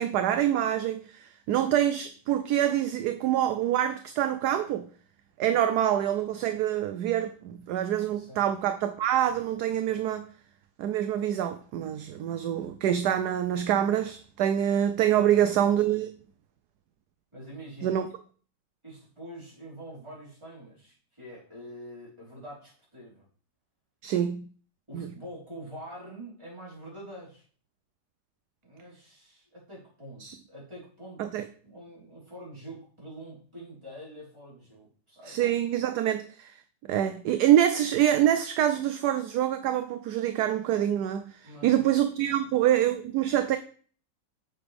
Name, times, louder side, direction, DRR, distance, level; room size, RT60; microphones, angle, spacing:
voice 1, 0.0-4.9 5.4-10.3 10.8-16.1 17.8-18.1 24.0-24.5 24.9-25.1 30.2-30.3 31.2-31.5 35.3-36.6 36.9-43.6, right 11 dB, 70° right, 1.1 m, -26 dB
voice 2, 8.0-8.4 15.1-16.0 17.3-18.0 18.8-23.2 24.9-27.4 28.6-31.4 31.7-35.4 41.4-41.9 42.2-42.5, right 1 dB, 15° right, 4.4 m, -45 dB
8.9 x 6.4 x 3.5 m
omnidirectional pair, 1.9 m